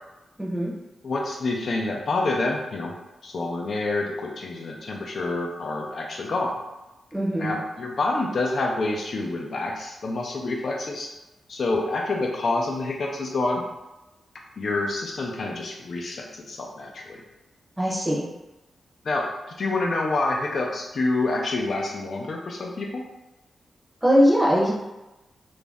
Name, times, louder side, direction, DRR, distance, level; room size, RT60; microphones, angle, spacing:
voice 1, 0.4-0.7 7.1-7.6 17.8-18.2 24.0-24.7, equal, 10° right, -4 dB, 0.7 m, -21 dB
voice 2, 1.0-2.9 3.2-6.5 7.4-11.1 11.5-13.6 14.6-17.2 19.0-19.3 19.6-23.0, left 2 dB, 55° left, 0 dB, 0.4 m, -27 dB
2.4 x 2.0 x 3.4 m, 1.0 s
wide cardioid pair, 115°, 0 cm